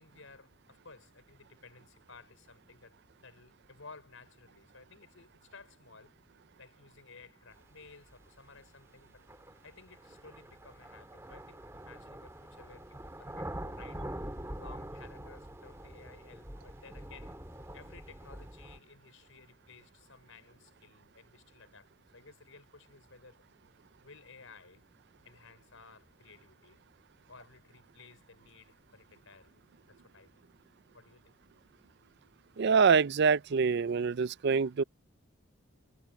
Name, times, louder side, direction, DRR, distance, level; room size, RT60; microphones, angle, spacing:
voice 1, 0.0-3.0 3.2-6.1 6.6-9.2 9.6-14.1 14.6-17.4 17.7-23.4 24.0-24.9 25.2-26.8 27.3-29.6 29.9-30.3 30.9-31.3, left 4 dB, 75° left, 5.2 m, -56 dB
sound 1, 8.2-8.3 9.3-18.8, right 1 dB, 15° right, 2.6 m, -45 dB
voice 2, 32.6-34.8, right 5 dB, 55° right, 0.4 m, -25 dB
head